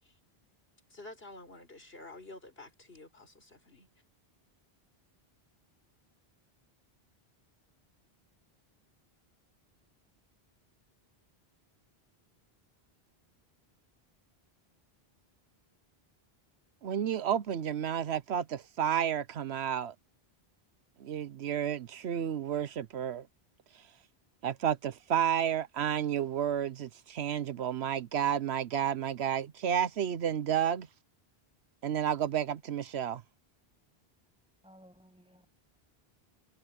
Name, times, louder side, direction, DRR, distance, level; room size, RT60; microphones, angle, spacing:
voice 1, 0.9-3.9, left 2 dB, 65° left, 4.7 m, -50 dB
voice 2, 16.8-19.9 21.0-23.3 24.4-30.9 31.8-33.2, right 9 dB, 80° right, 1.0 m, -31 dB
voice 3, 34.6-35.5, equal, 5° right, 8.0 m, -57 dB
omnidirectional pair, 1.1 m